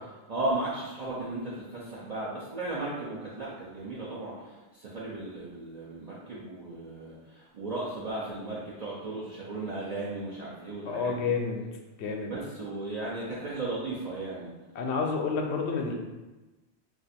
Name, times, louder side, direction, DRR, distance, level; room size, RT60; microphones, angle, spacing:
voice 1, 0.3-11.3 12.2-14.5, right 2 dB, 50° right, -7 dB, 0.6 m, -35 dB
voice 2, 10.9-11.6 12.0-12.3 14.7-15.9, left 4 dB, 75° left, 2 dB, 0.8 m, -29 dB
2.5 x 2.5 x 4.0 m, 1.1 s
omnidirectional pair, 1.1 m